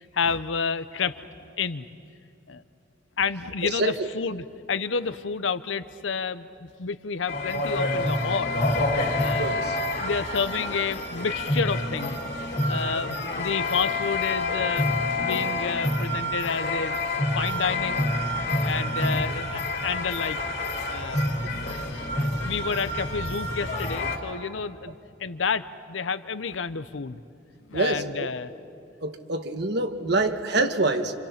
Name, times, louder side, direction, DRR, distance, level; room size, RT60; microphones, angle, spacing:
voice 1, 0.1-1.1 1.6-1.9 2.5-2.6 3.2-8.6 9.2-9.5 9.9-12.2 12.7-17.0 17.3-18.1 18.6-20.4 20.9-21.3 21.6-21.9 22.4-24.9 25.2-27.2 27.7-28.5, left 5 dB, 85° left, 14 dB, 0.8 m, -30 dB
voice 2, 3.6-4.1 9.4-9.8 27.7-28.3 29.0-31.1, right 2 dB, 60° right, 7 dB, 1.4 m, -26 dB
sound 1, 7.3-24.2, left 2 dB, 60° left, 3.3 m, -27 dB
28.0 x 28.0 x 5.9 m, 2.5 s
head